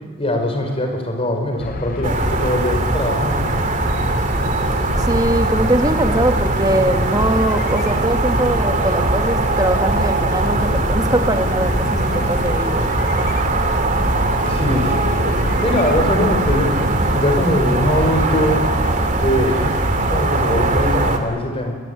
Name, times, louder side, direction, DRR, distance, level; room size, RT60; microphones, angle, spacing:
voice 1, 0.2-3.5 14.5-15.1 15.6-18.6 19.2-21.8, left 1 dB, 30° left, 4 dB, 5.1 m, -21 dB
sound 1, 1.6-16.4, left 2 dB, 50° left, 0.9 m, -29 dB
sound 2, 2.0-21.2, right 2 dB, 45° right, 2.7 m, -20 dB
voice 2, 5.0-13.4, right 1 dB, 20° right, 6 dB, 1.7 m, -22 dB
23.5 x 21.5 x 9.9 m, 1.5 s
head